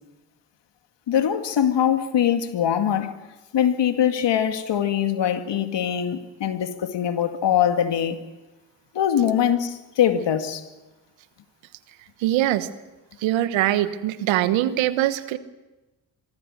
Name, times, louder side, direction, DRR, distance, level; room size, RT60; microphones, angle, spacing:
voice 1, 1.1-3.2 3.5-8.2 8.9-10.6, left 9 dB, 65° left, 2.1 m, -22 dB
voice 2, 12.2-12.7 13.2-15.4, right 14 dB, 80° right, 1.2 m, -22 dB
24.5 x 23.0 x 6.5 m
hypercardioid pair, 40°, 45 cm